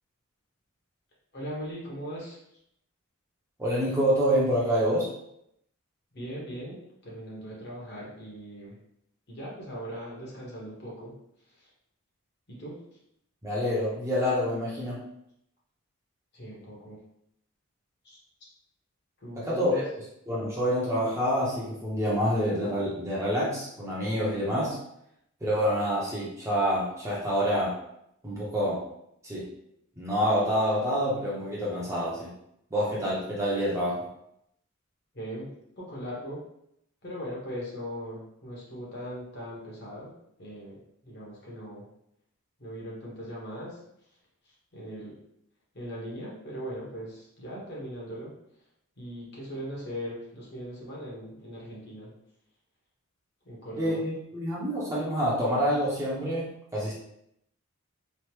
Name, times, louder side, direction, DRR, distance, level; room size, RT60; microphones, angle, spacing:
voice 1, 1.3-2.4 6.1-8.8 9.3-11.1 12.5-12.8 16.3-17.0 18.0-18.2 19.2-19.8 35.1-36.4 37.0-40.1 40.4-41.9 42.6-43.8 44.7-45.1 45.7-48.3 49.0-52.1 53.4-54.0, equal, 45° left, -5 dB, 0.9 m, -39 dB
voice 2, 3.6-5.1 13.4-15.1 19.4-19.8 20.3-24.8 25.4-27.8 28.2-28.8 29.2-29.5 30.0-32.3 32.7-34.1 53.8-56.9, equal, 15° right, -7 dB, 0.6 m, -27 dB
3.2 x 2.0 x 2.9 m, 0.76 s
head